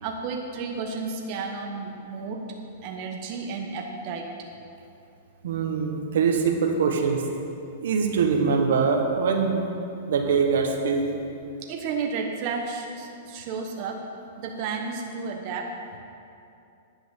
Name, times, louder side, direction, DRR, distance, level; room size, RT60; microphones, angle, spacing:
voice 1, 0.0-2.4 2.8-4.2 11.7-14.0 14.4-15.7, right 5 dB, 45° right, 1 dB, 1.0 m, -32 dB
voice 2, 5.4-7.2 7.8-9.6 10.1-11.2, right 5 dB, 75° right, 3 dB, 1.3 m, -23 dB
10.5 x 6.0 x 7.1 m, 2.6 s
hypercardioid pair, 145°, 0 cm